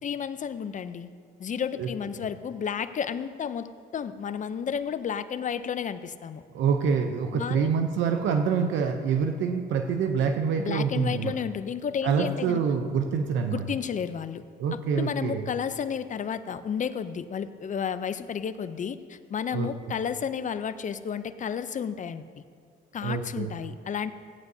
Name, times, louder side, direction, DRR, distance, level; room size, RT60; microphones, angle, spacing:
voice 1, 0.0-1.1 1.4-6.4 7.3-7.7 10.6-12.6 13.5-14.4 14.7-22.4 22.9-24.1, left 7 dB, 40° left, 12 dB, 0.5 m, -32 dB
voice 2, 6.5-11.3 12.0-13.6 14.6-15.5 19.5-19.9 23.0-23.5, right 6 dB, 75° right, 5 dB, 0.7 m, -26 dB
17.0 x 9.4 x 2.7 m, 2.2 s
cardioid pair, 85°, 19 cm